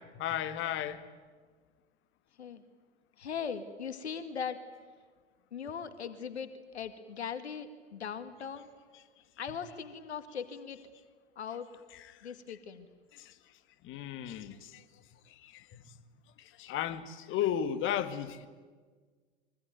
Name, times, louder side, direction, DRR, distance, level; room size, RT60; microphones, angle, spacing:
voice 1, 0.1-1.0 11.9-12.2 13.1-13.3 13.8-14.8 15.3-15.8 16.4-18.5, left 10 dB, 35° left, 2.0 m, -35 dB
voice 2, 3.2-4.6 5.5-8.7 9.4-10.8 11.4-11.7 12.2-12.9, left 7 dB, 75° left, 2.1 m, -39 dB
24.5 x 24.0 x 9.3 m
figure-of-eight pair, 90°, 33 cm